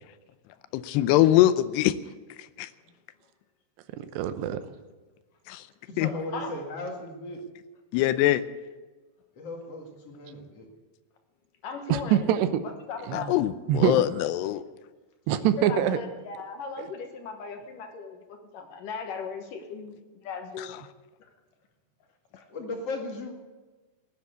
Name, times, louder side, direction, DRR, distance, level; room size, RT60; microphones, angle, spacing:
voice 1, 0.7-1.9 2.6-2.7 5.5-5.6 6.0-6.1 7.9-8.4 13.1-14.6 20.6-20.7, left 14 dB, 85° left, 14 dB, 2.8 m, -23 dB
voice 2, 4.0-4.6 11.9-12.6 13.1-13.4 13.7-14.0 15.3-16.0, right 10 dB, 90° right, 11 dB, 3.1 m, -24 dB
voice 3, 5.8-7.4 9.3-10.7 22.5-23.3, left 2 dB, 45° left, 2 dB, 2.6 m, -36 dB
voice 4, 11.6-12.3 12.9-13.3 15.6-19.9 20.2-20.7 22.3-22.4, left 5 dB, 65° left, 5 dB, 2.5 m, -37 dB
17.0 x 10.5 x 8.3 m, 1.3 s
omnidirectional pair, 4.8 m